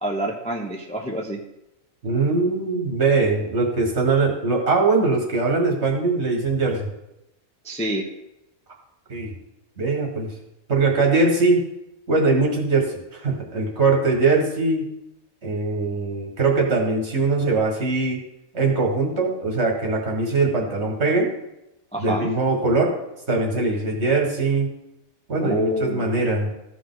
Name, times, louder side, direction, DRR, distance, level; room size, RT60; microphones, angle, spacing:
voice 1, 0.0-1.4 7.6-8.1 21.9-22.3 25.4-26.1, right 1 dB, 5° left, 1 dB, 0.6 m, -27 dB
voice 2, 2.0-6.9 9.1-9.3 9.8-10.3 10.7-11.6 12.1-14.9 15.4-18.2 18.5-21.3 22.0-22.9 23.3-24.7 25.3-26.5, right 3 dB, 50° right, 0 dB, 2.1 m, -21 dB
15.0 x 5.0 x 3.9 m, 0.87 s
omnidirectional pair, 1.4 m